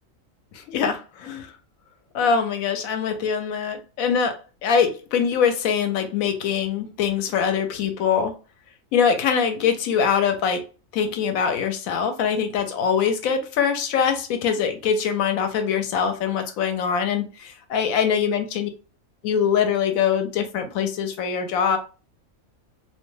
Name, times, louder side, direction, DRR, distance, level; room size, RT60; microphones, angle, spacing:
voice 1, 0.5-1.5 2.1-8.3 8.9-10.7 10.9-18.7 19.2-21.8, left 7 dB, 85° left, 1.0 m, -23 dB
2.5 x 2.2 x 3.0 m
omnidirectional pair, 1.4 m